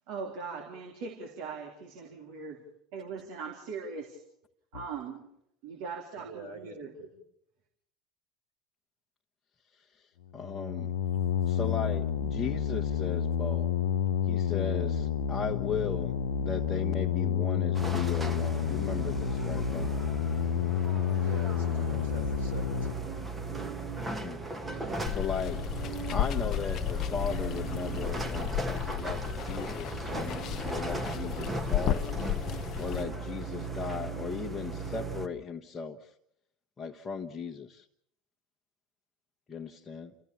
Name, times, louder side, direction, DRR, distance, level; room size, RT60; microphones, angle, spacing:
voice 1, 0.1-2.6 2.9-4.2 4.7-5.2 5.6-7.1, right 5 dB, 65° right, 0 dB, 3.5 m, -40 dB
sound 1, 4.7-4.9 10.4-22.9, left 8 dB, 80° left, 0.8 m, -30 dB
voice 2, 6.2-7.1 21.1-23.3, right 4 dB, 85° right, 2 dB, 4.1 m, -46 dB
voice 3, 10.3-10.9 11.5-13.7 14.3-19.9 24.0-25.6 26.1-32.0 32.8-36.1 36.8-37.9 39.5-40.1, left 5 dB, 25° left, 0 dB, 1.3 m, -37 dB
sound 2, 17.7-35.3, right 3 dB, 15° right, 1.7 m, -37 dB
Water, 25.1-33.0, left 11 dB, 45° left, 0.9 m, -33 dB
29.5 x 15.0 x 7.1 m, 0.78 s
hypercardioid pair, 75°, 0 cm